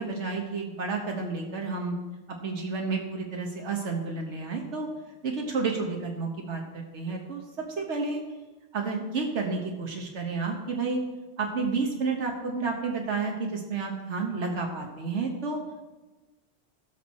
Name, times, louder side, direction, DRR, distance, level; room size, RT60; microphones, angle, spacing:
voice 1, 0.0-2.0 2.4-4.9 5.2-8.2 8.7-11.0 11.4-15.6, right 4 dB, 80° right, 1 dB, 1.4 m, -31 dB
16.5 x 6.3 x 4.2 m, 1.2 s
omnidirectional pair, 1.2 m